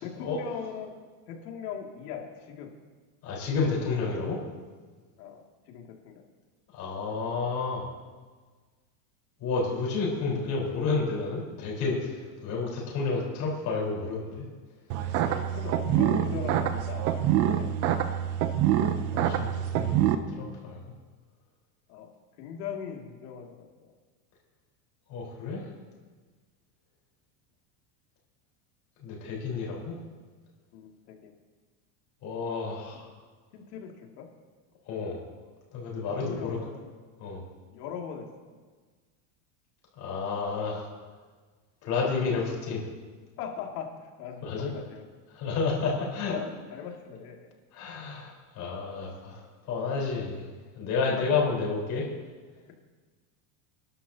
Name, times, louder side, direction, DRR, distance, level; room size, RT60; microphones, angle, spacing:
voice 1, 0.0-1.0 1.3-2.7 5.2-5.4 5.7-6.2 15.5-17.7 21.9-22.1 22.4-23.9 30.7-31.3 33.5-34.3 36.0-36.9 37.7-38.5 43.4-45.0 45.6-45.8 46.7-47.5, left 7 dB, 75° left, 1 dB, 2.5 m, -40 dB
voice 2, 3.2-4.4 6.7-7.9 9.4-14.4 19.1-20.1 20.4-20.8 25.1-25.7 29.0-30.0 32.2-33.1 34.9-35.2 35.7-36.6 37.2-37.4 40.0-40.9 41.8-42.8 44.4-44.7 45.3-46.4 47.7-50.5 50.8-52.1, left 4 dB, 35° left, -3 dB, 4.4 m, -30 dB
sound 1, 14.9-20.1, right 10 dB, 30° right, 0.5 m, -26 dB
26.0 x 11.5 x 2.9 m, 1.4 s
supercardioid pair, 170°, 47 cm